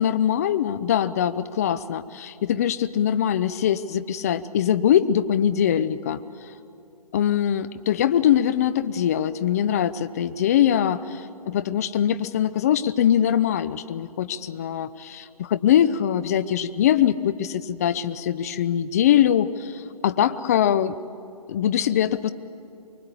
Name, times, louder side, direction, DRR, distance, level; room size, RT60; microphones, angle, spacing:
voice 1, 0.0-6.2 7.1-20.9 21.5-22.3, left 10 dB, 25° left, 13 dB, 0.6 m, -22 dB
24.5 x 22.0 x 8.4 m, 2.6 s
figure-of-eight pair, 150°, 20 cm